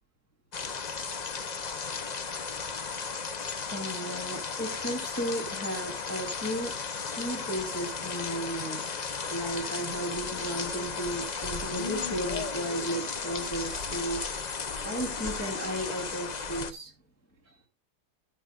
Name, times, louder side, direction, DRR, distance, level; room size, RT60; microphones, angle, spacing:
sound 1, 0.5-16.7, left 5 dB, 45° left, 0.5 m, -35 dB
voice 1, 3.7-6.8 7.1-14.6 14.8-16.9 17.5-17.6, right 1 dB, 10° left, 1.9 m, -35 dB
12.5 x 9.8 x 2.4 m
omnidirectional pair, 1.8 m